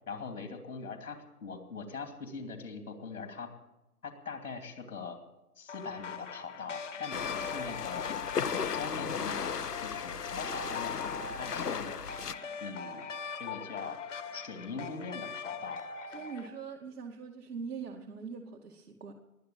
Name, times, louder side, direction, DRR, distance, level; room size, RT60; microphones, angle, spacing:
voice 1, 0.1-3.5 4.0-5.2 5.6-8.0 8.5-12.0 12.6-13.0 13.4-14.0 14.3-15.8, left 4 dB, 70° left, 6 dB, 2.8 m, -42 dB
sound 1, 5.7-16.5, left 6 dB, 50° left, 1.6 m, -41 dB
sound 2, 7.1-12.3, left 6 dB, 90° left, 1.2 m, -36 dB
voice 2, 16.1-19.1, right 5 dB, 80° right, 0 dB, 2.3 m, -42 dB
21.0 x 7.7 x 8.7 m, 0.95 s
hypercardioid pair, 165°, 46 cm